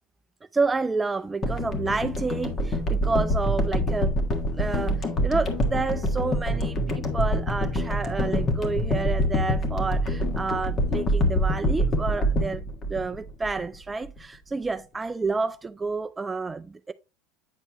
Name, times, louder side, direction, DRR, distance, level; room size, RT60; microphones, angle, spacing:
voice 1, 0.5-4.2 4.5-16.9, right 3 dB, 15° right, 0.3 m, -29 dB
sound 1, 1.4-13.7 14.1-14.2, equal, 30° left, 1.5 m, -25 dB
9.2 x 4.6 x 2.9 m
supercardioid pair, 110°, 0 cm